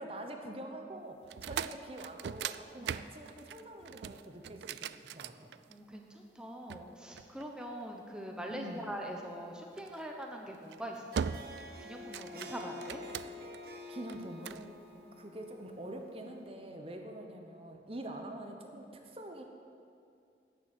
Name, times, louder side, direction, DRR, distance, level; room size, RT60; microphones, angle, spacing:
voice 1, 0.0-5.3 8.5-8.9 13.9-14.7 15.2-19.4, right 1 dB, 35° right, 4 dB, 0.9 m, -45 dB
sound 1, 1.2-6.0 6.7-8.0 9.8-10.0 10.5-10.8 11.2-11.7 12.0-13.6 14.1-14.7, right 7 dB, 75° right, 0.3 m, -40 dB
voice 2, 5.7-11.3 11.6-13.0 14.9-15.0, equal, 5° right, 1 dB, 0.8 m, -43 dB
Harp, 10.9-16.4, left 2 dB, 55° right, 1.3 m, -48 dB
10.5 x 7.0 x 9.1 m, 2.5 s
head